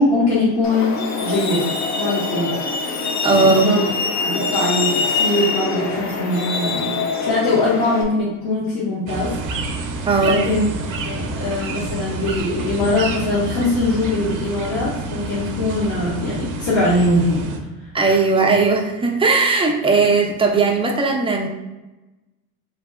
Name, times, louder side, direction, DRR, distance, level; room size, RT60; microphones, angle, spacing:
voice 1, 0.0-2.6 3.4-3.8 4.2-7.0 7.2-9.3 10.2-10.7 11.0-17.5 18.0-18.2, left 2 dB, 65° left, -8 dB, 1.3 m, -21 dB
Truck, 0.6-8.0, left 4 dB, 40° left, 0.7 m, -24 dB
voice 2, 3.2-3.7 10.1-10.4 17.9-21.5, right 4 dB, 15° right, 1 dB, 0.5 m, -17 dB
sound 1, 9.1-17.6, right 3 dB, 50° right, 0.7 m, -28 dB
3.3 x 3.2 x 2.2 m, 1.1 s
supercardioid pair, 85°, 43 cm